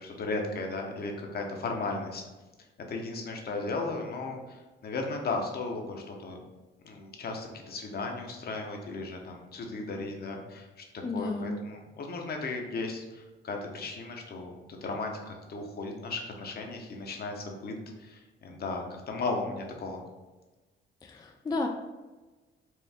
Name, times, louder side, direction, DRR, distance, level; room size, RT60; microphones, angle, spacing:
voice 1, 0.0-2.3 2.9-6.4 6.8-14.5 14.8-20.0, left 3 dB, 50° left, 2 dB, 0.9 m, -36 dB
voice 2, 11.0-11.6 21.0-21.7, left 3 dB, 20° left, 3 dB, 0.3 m, -32 dB
4.5 x 2.5 x 3.5 m, 1.2 s
cardioid pair, 90°, 20 cm